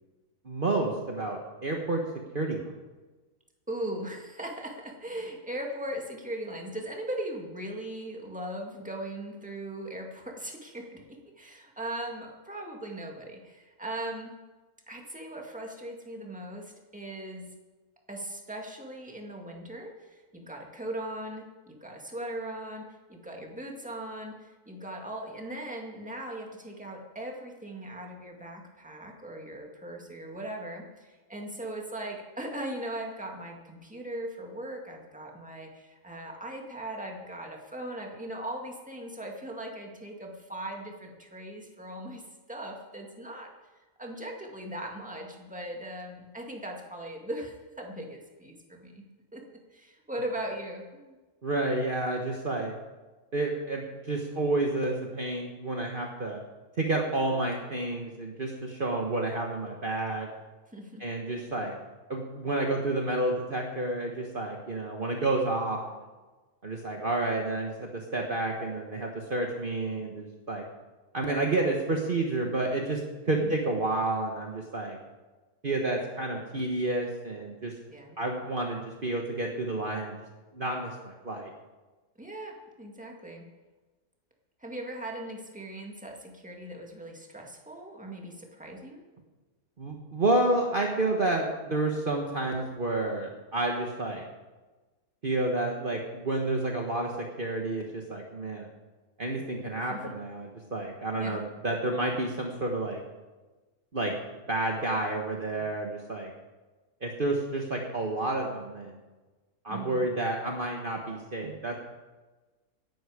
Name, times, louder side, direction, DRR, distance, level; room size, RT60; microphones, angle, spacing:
voice 1, 0.4-2.0 2.3-2.7 51.4-52.7 53.3-56.4 56.8-60.3 61.0-61.8 62.1-66.0 66.6-70.6 71.1-75.0 75.6-77.7 78.2-80.2 80.5-81.5 89.8-94.2 95.2-97.1 97.4-98.7 99.2-103.0 103.9-104.2 104.5-106.3 107.0-109.0 109.6-111.8, right 2 dB, 35° right, 0 dB, 1.4 m, -30 dB
voice 2, 3.7-11.0 11.4-14.3 14.9-17.5 18.1-42.2 42.5-43.5 44.0-49.0 49.3-51.2 60.7-61.0 73.3-73.5 77.9-78.2 82.2-83.4 84.6-89.0 99.9-100.0 101.2-101.4 109.7-110.1, right 1 dB, 5° right, 0 dB, 2.0 m, -39 dB
17.0 x 11.5 x 5.0 m, 1.2 s
omnidirectional pair, 1.6 m